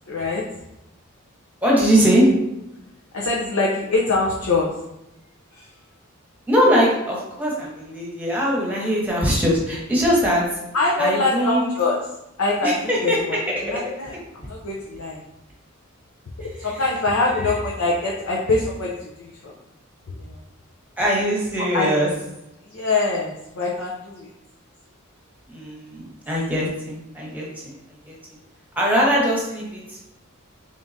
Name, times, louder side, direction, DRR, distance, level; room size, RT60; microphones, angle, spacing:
voice 1, 0.1-0.4 3.1-4.7 5.5-5.7 10.7-12.0 12.4-13.4 13.6-15.2 16.6-19.5 20.1-20.4 21.7-21.9 22.7-24.3, left 3 dB, 85° left, -3 dB, 0.6 m, -24 dB
voice 2, 1.6-2.3 6.5-10.4 11.0-11.7 12.6-13.2 13.5-13.6 16.4-16.5 17.4-17.5 21.0-22.1 25.5-27.7 28.1-28.2 28.8-30.0, equal, 10° right, -4 dB, 1.0 m, -21 dB
3.7 x 3.5 x 2.6 m, 0.89 s
head